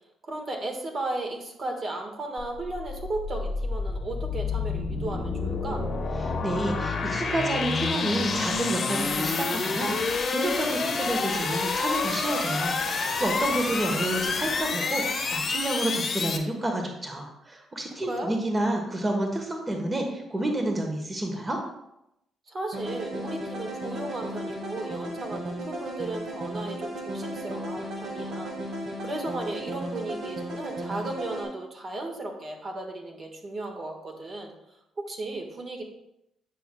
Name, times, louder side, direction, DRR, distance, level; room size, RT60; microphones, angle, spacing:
voice 1, 0.2-5.9 18.0-18.4 22.5-34.5 35.0-35.8, right 2 dB, 45° right, 2 dB, 1.5 m, -35 dB
sound 1, 2.4-16.4, left 4 dB, 45° left, 1.0 m, -28 dB
voice 2, 6.2-21.6, right 1 dB, 25° right, 2 dB, 1.1 m, -29 dB
sound 2, 22.7-31.4, right 1 dB, 75° right, 1.7 m, -35 dB
9.0 x 6.1 x 2.2 m, 0.84 s
cardioid pair, 90°, 0 cm